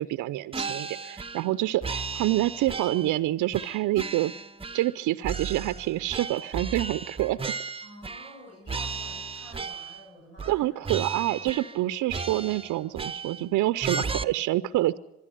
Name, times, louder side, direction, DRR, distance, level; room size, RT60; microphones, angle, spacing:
voice 1, 0.0-4.3 4.7-7.4 10.5-15.0, right 16 dB, 65° right, 14 dB, 0.7 m, -27 dB
sound 1, 0.5-1.5 1.8-3.2 3.5-5.0 5.2-8.4 8.7-10.0 10.4-10.6 10.8-11.8 12.1-13.5 13.8-14.2, right 4 dB, 15° right, 0.8 m, -35 dB
voice 2, 7.8-10.9, equal, 90° left, -3 dB, 7.5 m, -50 dB
24.5 x 10.5 x 10.0 m, 0.96 s
hypercardioid pair, 55°, 33 cm